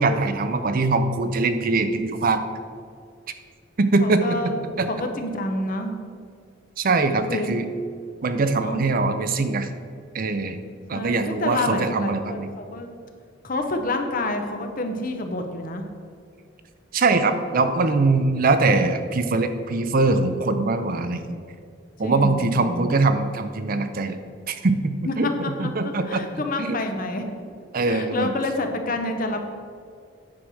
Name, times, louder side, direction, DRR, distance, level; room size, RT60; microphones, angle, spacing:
voice 1, 0.0-2.4 3.8-4.5 4.8-4.9 6.8-7.7 8.2-9.7 10.1-10.6 10.9-12.5 16.9-21.2 22.0-24.2 24.5-25.3 25.6-26.2 26.6-26.8 27.7-28.3, right 3 dB, 45° right, 9 dB, 0.5 m, -22 dB
voice 2, 4.0-4.5 4.9-5.9 7.3-7.5 8.5-8.8 10.9-12.9 13.4-15.8 22.0-22.9 25.0-27.4 27.8-29.4, left 2 dB, 45° left, 5 dB, 0.9 m, -28 dB
9.6 x 4.8 x 6.3 m, 2.2 s
head